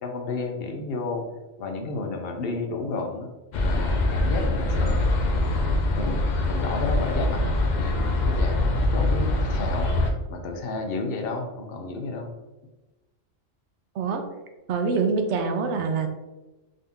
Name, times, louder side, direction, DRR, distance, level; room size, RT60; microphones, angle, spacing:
voice 1, 0.0-1.3 1.6-3.3 3.6-5.1 6.0-6.2 6.5-8.6 8.9-12.4, left 3 dB, 55° left, 3 dB, 0.8 m, -32 dB
sound 1, 3.5-10.1, left 2 dB, 75° left, 0.4 m, -23 dB
voice 2, 14.7-16.1, right 4 dB, 65° right, 5 dB, 0.8 m, -25 dB
3.8 x 2.7 x 3.5 m, 1.1 s
omnidirectional pair, 1.3 m